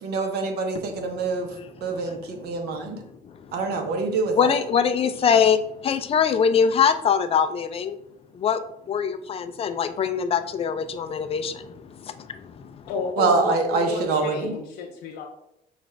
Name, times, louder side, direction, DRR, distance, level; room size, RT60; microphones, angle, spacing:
voice 1, 0.0-1.5 1.8-3.0 3.5-4.6 13.2-14.6, right 4 dB, 70° right, 4 dB, 0.8 m, -25 dB
voice 2, 4.3-5.6 5.8-8.0 8.4-8.6 8.9-11.7 12.1-12.3 12.6-12.7, left 7 dB, 35° left, 10 dB, 0.4 m, -22 dB
voice 3, 12.9-15.3, left 4 dB, 85° left, -1 dB, 0.6 m, -31 dB
5.0 x 2.4 x 3.2 m, 0.80 s
cardioid pair, 110°, 17 cm